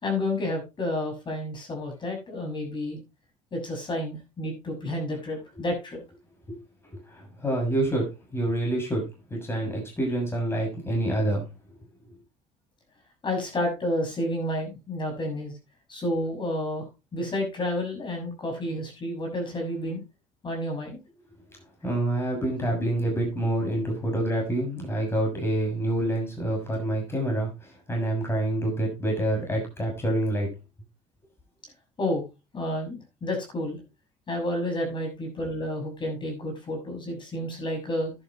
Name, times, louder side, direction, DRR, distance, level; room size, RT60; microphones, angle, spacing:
voice 1, 0.0-3.0 3.5-6.0 13.2-15.6 15.9-16.8 17.1-20.0 20.4-21.0 32.0-32.2 32.5-33.8 34.3-38.1, left 1 dB, 35° left, 2 dB, 6.5 m, -30 dB
voice 2, 7.1-11.4 21.8-30.5, right 1 dB, 15° left, 1 dB, 6.5 m, -27 dB
11.0 x 11.0 x 3.1 m, 0.27 s
cardioid pair, 100°, 14 cm